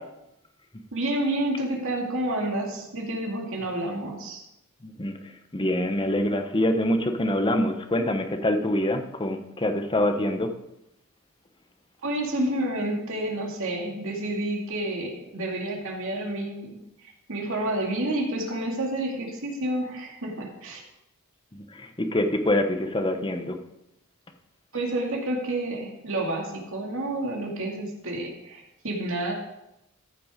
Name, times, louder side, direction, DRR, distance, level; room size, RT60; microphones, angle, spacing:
voice 1, 0.9-4.4 12.0-20.8 24.7-29.3, right 1 dB, 65° right, 0 dB, 2.5 m, -29 dB
voice 2, 4.8-10.5 21.5-23.6, left 1 dB, 20° left, 6 dB, 1.0 m, -25 dB
14.0 x 6.9 x 5.1 m, 0.88 s
head